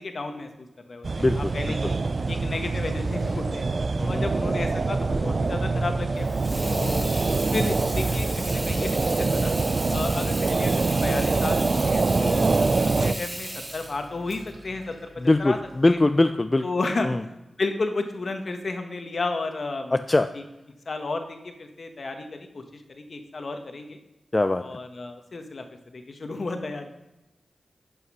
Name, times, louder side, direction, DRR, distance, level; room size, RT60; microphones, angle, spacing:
voice 1, 0.0-2.0 2.3-3.7 4.1-6.3 6.7-11.6 11.8-12.5 12.8-15.1 15.4-15.6 15.8-16.0 16.6-19.9 20.8-24.0 24.6-26.9, left 3 dB, 60° left, 6 dB, 1.4 m, -32 dB
sound 1, 1.0-13.1, right 3 dB, 60° right, 0.4 m, -25 dB
voice 2, 1.2-1.5 1.8-1.9 4.0-4.3 6.5-7.2 15.2-16.6 17.0-17.2 19.9-20.3 24.3-24.8, left 2 dB, 30° left, 9 dB, 0.5 m, -23 dB
Water tap faucet / Sink (filling or washing), 6.2-15.8, right 1 dB, 30° right, 3.2 m, -36 dB
11.0 x 5.6 x 5.6 m, 0.99 s
cardioid pair, 50°, 0 cm